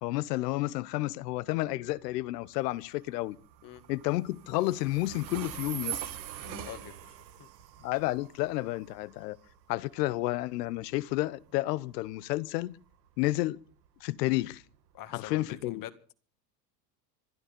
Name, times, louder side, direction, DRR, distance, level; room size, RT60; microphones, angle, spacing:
voice 1, 0.0-3.4 3.9-6.0 7.8-9.4 9.7-12.8 13.2-13.6 14.0-14.6 15.1-15.8, left 18 dB, 70° left, 1.0 m, -31 dB
Train, 0.9-15.7, right 11 dB, 85° right, 2.4 m, -45 dB
voice 2, 6.4-7.5 14.9-15.9, left 11 dB, 40° left, 1.9 m, -45 dB
26.0 x 10.0 x 5.2 m
supercardioid pair, 110°, 50 cm